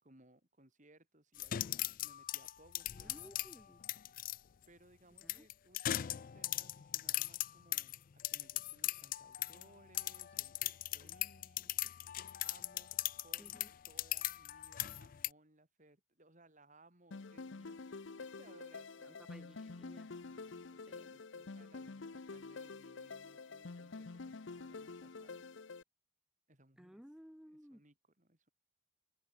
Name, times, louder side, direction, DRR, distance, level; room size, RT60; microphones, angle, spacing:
voice 1, 0.0-3.3 4.7-10.6 10.9-11.7 12.4-12.9 13.2-17.8 18.2-19.2 20.2-25.5 26.5-27.0 27.4-28.5, right 2 dB, 40° right, 4.4 m, -65 dB
sound 1, 1.4-4.4 5.2-9.7 9.9-15.3, left 14 dB, 45° left, 0.3 m, -39 dB
voice 2, 2.9-3.8 5.2-5.5 13.4-13.7 19.0-20.1 20.9-21.2 26.8-27.8, equal, 5° right, 0.7 m, -57 dB
sound 2, 17.1-25.8, left 4 dB, 70° left, 0.7 m, -48 dB
open air
head